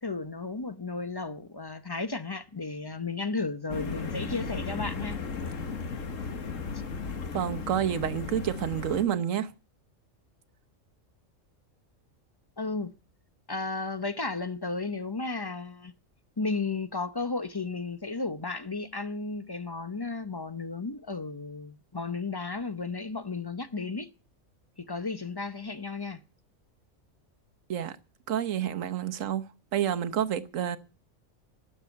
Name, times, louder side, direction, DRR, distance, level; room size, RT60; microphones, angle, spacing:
voice 1, 0.0-5.2 12.6-12.9 13.5-15.9 16.4-24.1 24.8-26.2, left 3 dB, 25° left, 0.7 m, -34 dB
sound 1, 3.7-9.0, left 5 dB, 75° left, 1.7 m, -35 dB
voice 2, 7.3-9.5 27.7-28.0 28.3-29.5 29.7-30.8, right 9 dB, 75° right, 1.3 m, -29 dB
12.0 x 7.6 x 9.4 m
omnidirectional pair, 1.4 m